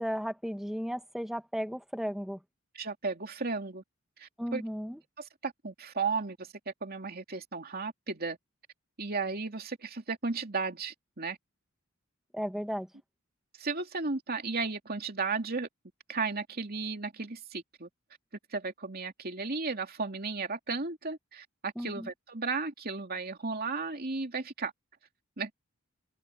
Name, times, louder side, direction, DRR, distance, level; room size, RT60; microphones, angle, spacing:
voice 1, 0.0-2.4 4.4-5.0 12.3-12.9 21.8-22.1, equal, ahead, 2.1 m, -35 dB
voice 2, 2.7-3.8 4.2-4.6 5.2-8.4 9.0-11.4 13.6-15.7 16.1-17.9 18.5-24.7 25.4-25.5, right 4 dB, 45° right, 2.8 m, -34 dB
open air
head